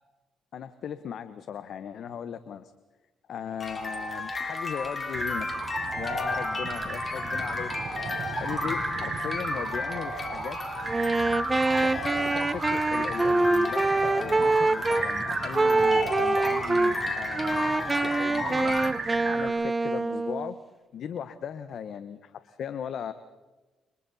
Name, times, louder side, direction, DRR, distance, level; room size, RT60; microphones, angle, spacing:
voice 1, 0.5-2.7 3.3-5.5 5.9-7.7 8.4-10.6 11.8-11.9 12.2-18.9 19.2-20.6 20.9-23.1, left 8 dB, 65° left, 11 dB, 1.2 m, -37 dB
sound 1, 3.6-18.9, left 3 dB, 30° left, 4.1 m, -34 dB
sound 2, 5.1-19.5, right 3 dB, 40° right, 5.6 m, -34 dB
Wind instrument woodwind instrument, 10.9-15.1 15.5-17.0 17.4-20.6, right 3 dB, 20° right, 0.7 m, -25 dB
29.5 x 25.5 x 4.3 m, 1.2 s
cardioid pair, 90°, 0 cm